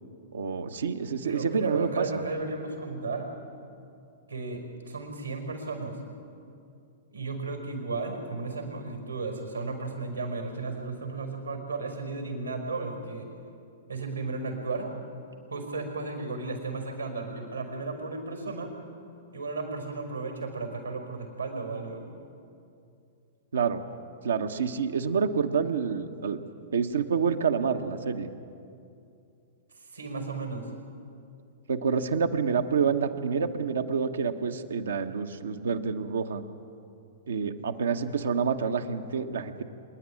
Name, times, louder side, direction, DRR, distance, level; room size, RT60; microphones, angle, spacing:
voice 1, 0.3-2.2 23.5-23.8 24.2-26.4 26.7-28.3 31.7-36.4 37.3-39.6, right 6 dB, 70° right, 7 dB, 1.2 m, -28 dB
voice 2, 1.2-3.3 4.3-6.0 7.1-13.3 13.9-14.9 15.5-18.7 19.3-22.0 29.7-30.7, right 3 dB, 90° right, 3 dB, 5.1 m, -34 dB
26.0 x 10.5 x 9.9 m, 2.5 s
figure-of-eight pair, 105°, 0 cm